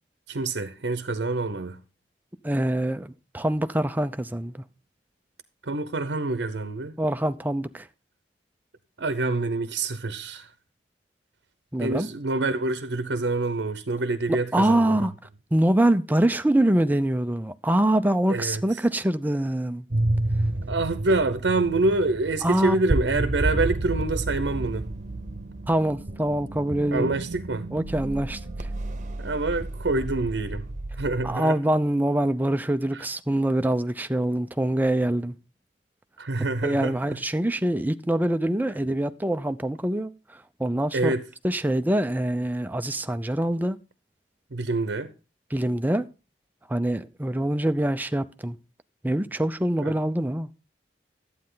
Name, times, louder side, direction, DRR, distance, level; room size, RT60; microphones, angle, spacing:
voice 1, 0.3-1.8 5.6-7.0 9.0-10.5 11.8-15.0 18.3-18.8 20.7-24.9 26.9-27.7 29.2-30.7 31.0-31.6 32.9-33.0 36.2-37.2 40.9-41.2 44.5-45.1 49.8-49.9, right 2 dB, 70° right, 0.8 m, -26 dB
voice 2, 2.4-3.1 3.3-4.6 7.0-7.9 11.7-12.1 14.3-15.1 15.5-19.9 22.4-22.8 25.7-27.2 27.7-28.7 31.2-35.4 36.6-40.1 40.6-41.1 41.4-43.8 45.5-46.1 46.7-48.6 49.0-50.5, right 1 dB, 10° right, 0.5 m, -24 dB
sound 1, 19.9-31.3, right 2 dB, 45° right, 1.0 m, -30 dB
11.5 x 8.7 x 3.8 m
head